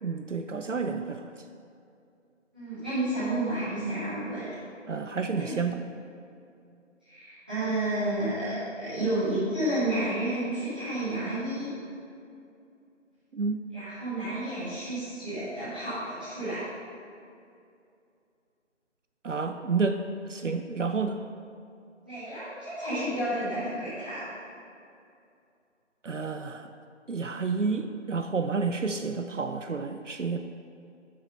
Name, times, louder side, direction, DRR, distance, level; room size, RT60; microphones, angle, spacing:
voice 1, 0.0-1.2 4.9-5.8 13.3-13.6 19.2-20.0 20.3-21.2 26.0-26.7 27.1-30.4, right 4 dB, 75° right, 7 dB, 0.7 m, -30 dB
voice 2, 2.5-4.6 5.4-5.6 7.1-11.7 13.7-16.6 22.0-24.2, right 1 dB, 10° right, -18 dB, 1.8 m, -31 dB
7.9 x 7.1 x 5.4 m, 2.5 s
figure-of-eight pair, 175°, 37 cm